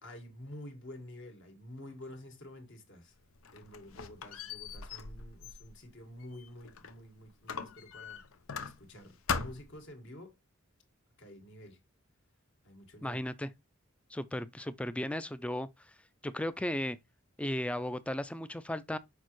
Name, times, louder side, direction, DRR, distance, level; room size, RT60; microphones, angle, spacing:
voice 1, 0.0-3.2 3.5-8.2 8.5-10.3 11.2-11.8 12.6-13.2, left 1 dB, 60° left, 1.8 m, -49 dB
Squeak, 3.2-7.0 7.5-9.0 9.3-9.8, left 5 dB, 80° left, 0.7 m, -40 dB
voice 2, 13.0-13.5 14.1-15.7 16.2-17.0 17.4-19.0, left 1 dB, 5° left, 0.3 m, -35 dB
6.4 x 5.1 x 3.1 m
head